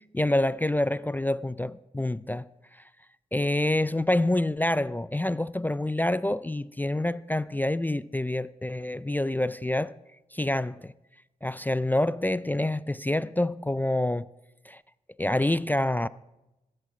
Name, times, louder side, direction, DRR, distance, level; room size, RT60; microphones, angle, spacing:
voice 1, 0.1-2.4 3.3-9.9 10.3-10.9 11.4-14.3 14.7-14.8 15.2-16.1, left 1 dB, 10° left, 0.4 m, -27 dB
15.0 x 8.6 x 4.9 m
cardioid pair, 50°, 16 cm